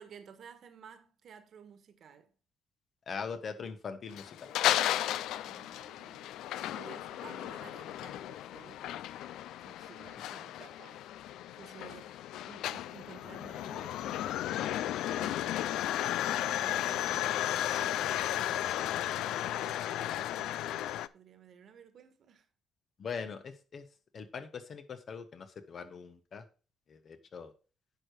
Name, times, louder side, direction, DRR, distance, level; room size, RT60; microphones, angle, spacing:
voice 1, 0.0-2.3 5.4-9.0 9.6-11.1 11.6-22.5, right 7 dB, 60° right, 1.4 m, -54 dB
voice 2, 3.1-4.5 23.0-23.9 24.1-26.4 26.9-27.5, left 5 dB, 50° left, 1.3 m, -41 dB
sound 1, 4.1-21.1, left 12 dB, 85° left, 0.3 m, -34 dB
9.7 x 5.0 x 4.6 m
cardioid pair, 90°, 0 cm